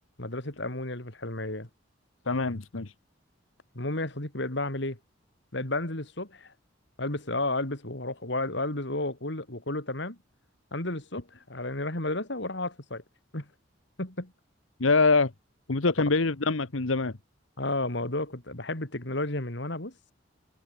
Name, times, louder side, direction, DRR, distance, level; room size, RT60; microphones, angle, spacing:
voice 1, 0.2-1.7 3.7-5.0 5.5-6.5 7.0-10.2 10.7-13.0 13.3-13.5 14.0-14.3 17.6-20.1, left 2 dB, 60° left, 3.5 m, -32 dB
voice 2, 2.3-2.9 14.8-15.3 15.7-17.1, left 3 dB, 85° left, 1.2 m, -24 dB
open air
head